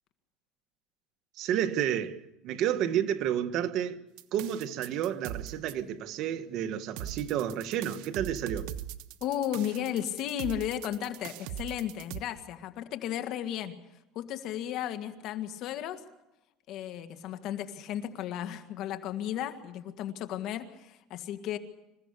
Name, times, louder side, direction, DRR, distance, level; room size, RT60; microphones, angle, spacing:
voice 1, 1.4-4.0 4.3-8.7, right 10 dB, 55° right, 1.6 m, -30 dB
sound 1, 4.2-5.7 7.0-12.2, right 11 dB, 75° right, 1.1 m, -40 dB
voice 2, 9.2-13.8 14.1-16.0 16.7-21.6, left 11 dB, 60° left, 1.9 m, -34 dB
26.5 x 16.0 x 8.4 m
cardioid pair, 135°, 0 cm